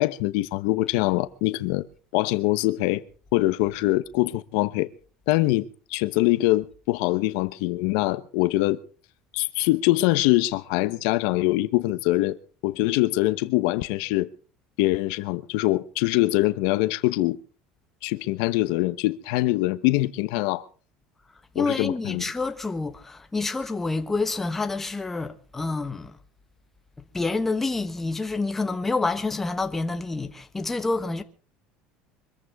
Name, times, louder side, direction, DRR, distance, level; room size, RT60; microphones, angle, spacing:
voice 1, 0.0-1.8 2.1-3.0 3.3-4.9 5.3-8.8 9.3-12.4 12.6-14.3 14.8-17.4 18.0-20.6 21.5-22.2, left 18 dB, 75° left, 0.9 m, -23 dB
voice 2, 21.5-26.2 27.0-31.2, left 3 dB, 10° left, 1.2 m, -28 dB
24.5 x 14.5 x 3.6 m
cardioid pair, 145°, 3 cm